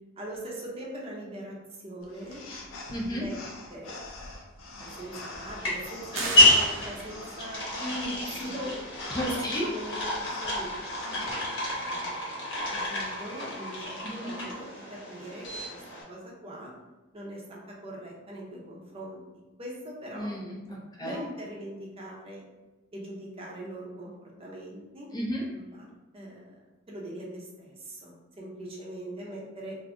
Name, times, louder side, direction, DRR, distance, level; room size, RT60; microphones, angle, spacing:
voice 1, 0.2-1.6 1.8-2.4 3.1-3.4 3.7-4.0 4.8-8.8 9.3-10.7 11.0-11.3 11.9-16.7 17.1-20.3 21.0-22.4 22.9-25.1 25.7-25.9 26.1-26.6 26.9-29.8, right 1 dB, 30° right, -3 dB, 0.7 m, -41 dB
sound 1, 2.0-11.3, left 2 dB, 90° left, 0.5 m, -45 dB
voice 2, 2.9-3.2 9.1-9.7 14.2-14.4 20.1-21.2 25.1-25.4, equal, 20° left, -3 dB, 0.5 m, -32 dB
sound 2, 4.8-16.0, left 1 dB, 70° left, 1.0 m, -29 dB
sound 3, 6.1-7.5, right 3 dB, 70° right, 0.6 m, -36 dB
2.6 x 2.5 x 3.5 m, 1.1 s
head